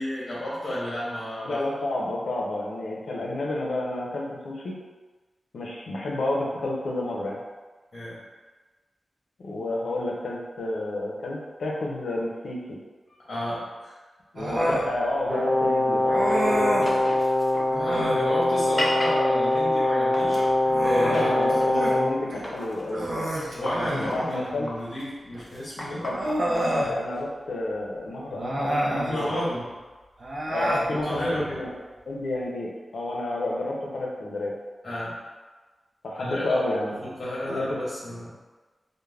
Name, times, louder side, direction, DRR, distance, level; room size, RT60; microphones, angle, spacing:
voice 1, 0.0-1.6 7.9-8.2 13.3-14.0 17.7-20.4 20.8-21.4 23.6-26.0 29.1-29.7 30.9-31.7 34.8-35.1 36.1-38.3, left 1 dB, 50° left, -9 dB, 0.8 m, -32 dB
voice 2, 1.4-4.8 5.5-7.4 9.4-12.8 14.3-16.9 21.1-23.3 23.9-24.7 26.0-26.4 26.8-29.4 30.5-31.7 32.1-34.5 36.0-36.9 37.5-37.6, left 2 dB, 85° left, -3 dB, 0.5 m, -30 dB
Human voice, 14.4-14.9 16.1-17.0 17.7-18.3 20.2-22.0 22.3-22.4 22.9-24.1 25.3-25.4 26.1-26.9 28.3-29.2 30.2-30.9, right 1 dB, 50° right, 0.4 m, -28 dB
Brass instrument, 15.3-22.2, left 1 dB, 75° right, 0.8 m, -23 dB
sound 1, 16.2-20.6 21.1-22.0 22.3-26.3, left 1 dB, 15° left, 0.4 m, -36 dB
2.3 x 2.1 x 3.2 m, 1.3 s
wide cardioid pair, 160°, 0 cm